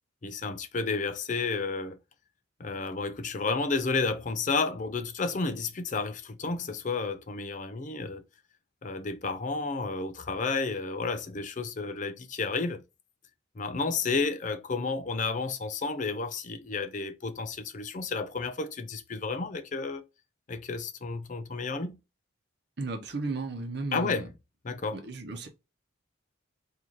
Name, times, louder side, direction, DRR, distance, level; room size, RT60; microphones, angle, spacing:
voice 1, 0.2-2.0 2.6-8.2 8.8-12.8 13.6-20.0 20.5-22.0 23.9-24.3 24.6-25.0, left 4 dB, 40° left, 0.5 m, -31 dB
voice 2, 22.8-24.3 24.7-25.5, right 3 dB, 55° right, 0.9 m, -35 dB
3.9 x 2.6 x 3.0 m
head